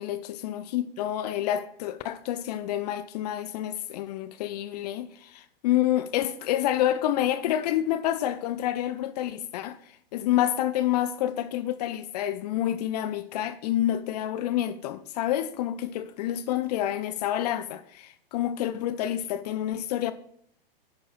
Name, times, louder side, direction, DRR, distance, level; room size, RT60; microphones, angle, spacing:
voice 1, 0.0-20.1, left 12 dB, 45° left, 0.5 m, -28 dB
10.0 x 4.6 x 4.4 m
hypercardioid pair, 115°, 30 cm